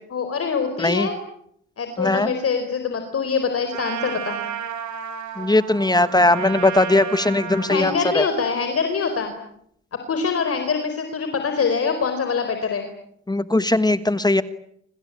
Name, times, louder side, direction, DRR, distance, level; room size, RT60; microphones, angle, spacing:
voice 1, 0.1-1.1 1.8-4.4 7.7-9.3 10.1-12.9, left 5 dB, 50° left, 7 dB, 4.2 m, -24 dB
voice 2, 0.8-1.1 2.0-2.3 5.4-8.3 13.3-14.4, left 2 dB, 15° left, 13 dB, 1.4 m, -19 dB
Trumpet, 3.7-8.0, right 8 dB, 75° right, 6.3 m, -32 dB
26.0 x 26.0 x 8.6 m, 0.72 s
cardioid pair, 90°, 30 cm